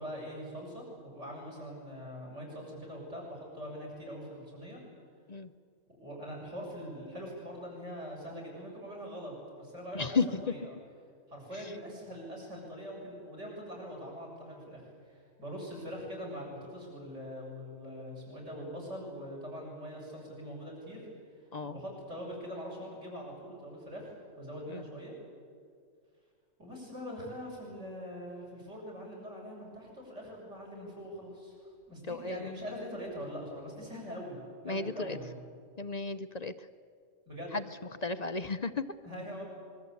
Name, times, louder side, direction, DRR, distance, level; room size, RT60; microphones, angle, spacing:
voice 1, 0.0-4.8 6.0-10.7 11.3-21.0 21.6-24.0 24.4-25.1 26.6-34.4 34.6-35.4 37.3-37.6 39.0-39.4, equal, 55° right, -1 dB, 7.1 m, -43 dB
voice 2, 9.9-10.4 21.5-21.8 24.7-24.8 32.1-32.5 34.6-35.2 35.8-36.5 37.5-37.6 38.0-38.8, left 4 dB, 45° left, 10 dB, 0.6 m, -33 dB
25.5 x 22.5 x 8.4 m, 2.1 s
omnidirectional pair, 1.5 m